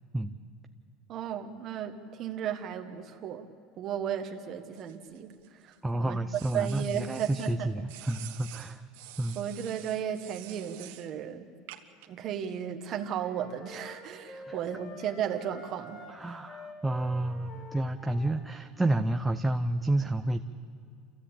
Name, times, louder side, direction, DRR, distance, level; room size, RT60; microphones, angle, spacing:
voice 1, 1.1-3.5 3.8-6.2 6.5-7.7 9.3-11.5 12.1-16.4, right 9 dB, 45° right, 5 dB, 1.2 m, -35 dB
sound 1, 4.8-5.8 6.3-7.6 7.9-11.1 11.7-12.1, right 14 dB, 85° right, 1.3 m, -48 dB
voice 2, 5.8-8.8 9.2-9.4 14.5-14.6 16.1-20.4, right 1 dB, 10° right, 6 dB, 0.6 m, -30 dB
sound 2, 12.8-18.6, left 1 dB, 65° left, 4.7 m, -48 dB
27.5 x 15.5 x 8.7 m, 2.3 s
supercardioid pair, 135°, 0 cm